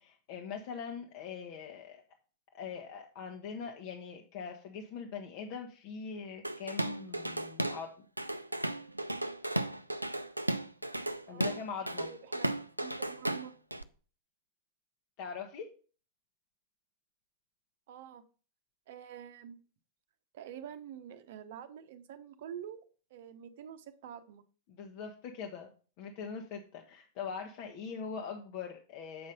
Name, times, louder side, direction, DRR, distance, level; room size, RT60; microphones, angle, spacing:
voice 1, 0.0-2.0 2.5-8.0 11.3-12.1 15.2-15.7 24.7-25.7 26.0-29.3, left 6 dB, 45° left, 1.0 m, -42 dB
Drum kit / Drum, 6.4-7.8 8.2-13.8, right 1 dB, 85° right, 0.5 m, -35 dB
voice 2, 11.3-11.6 12.0-13.5 17.9-18.2 18.9-19.6 20.3-24.4, right 9 dB, 50° right, 0.8 m, -47 dB
7.8 x 5.4 x 5.2 m
figure-of-eight pair, 95°, 0 cm